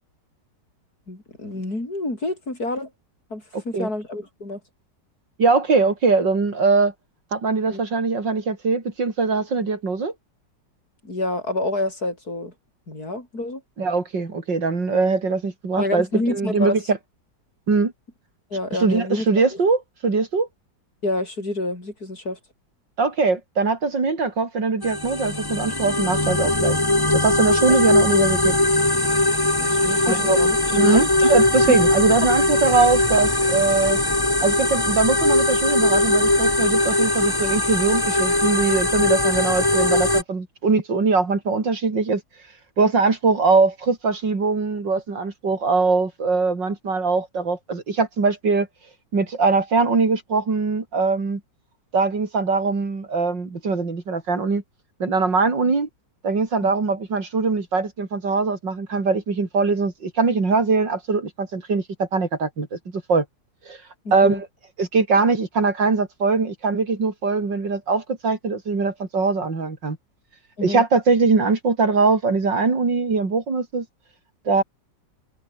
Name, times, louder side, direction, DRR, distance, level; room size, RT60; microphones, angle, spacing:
voice 1, 1.1-2.9 3.3-4.6 7.7-7.8 11.0-12.5 12.9-13.6 15.8-16.8 18.5-19.5 21.0-22.4 29.6-30.6 30.9-31.1 31.7-31.8 56.6-56.7 64.0-64.4 70.6-70.8, left 2 dB, 55° left, 8.0 m, -28 dB
voice 2, 3.5-3.9 5.4-6.9 7.3-10.1 13.8-17.0 17.7-17.9 18.8-20.5 23.0-26.8 27.1-28.6 30.1-30.4 30.7-34.0 34.4-42.2 42.8-48.7 49.1-51.4 51.9-54.6 55.0-55.9 56.2-63.2 63.7-63.8 64.1-64.4 64.8-70.0 70.6-73.9 74.5-74.6, right 4 dB, 90° right, 4.4 m, -21 dB
sound 1, 24.8-40.2, left 1 dB, 10° left, 2.0 m, -20 dB
omnidirectional pair, 1.9 m